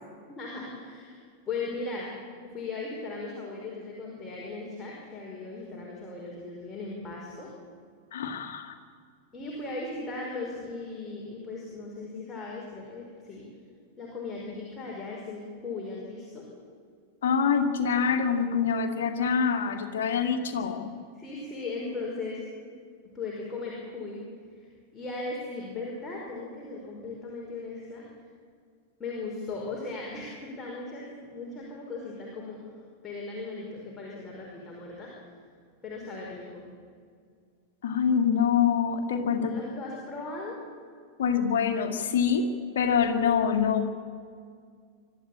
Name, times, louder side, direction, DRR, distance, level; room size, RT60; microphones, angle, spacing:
voice 1, 0.3-1.2 1.5-2.1 2.5-7.5 9.3-13.4 14.0-16.5 21.1-22.4 23.1-24.2 24.9-28.1 29.0-32.6 33.0-35.1 35.8-36.6 39.4-40.6, left 3 dB, 20° left, -3 dB, 5.1 m, -37 dB
voice 2, 8.1-8.7 17.2-20.9 37.8-39.5 41.2-42.5 42.8-43.9, left 7 dB, 60° left, 4 dB, 2.2 m, -25 dB
24.5 x 13.5 x 8.7 m, 2.1 s
figure-of-eight pair, 90°, 0 cm